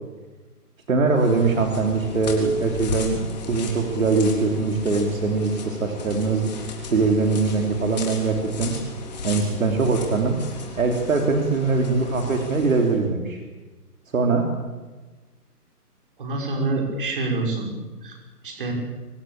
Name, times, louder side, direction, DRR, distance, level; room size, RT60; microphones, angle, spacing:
voice 1, 0.9-6.5 6.9-8.7 9.2-10.4 10.7-13.4 14.1-14.4, right 4 dB, 55° right, 3 dB, 3.4 m, -22 dB
sound 1, 1.1-13.0, left 4 dB, 25° left, 3.7 m, -35 dB
voice 2, 16.2-17.7 18.0-18.2 18.4-18.7, right 3 dB, 35° right, 2 dB, 5.6 m, -26 dB
24.5 x 20.0 x 8.8 m, 1.3 s
hypercardioid pair, 175°, 47 cm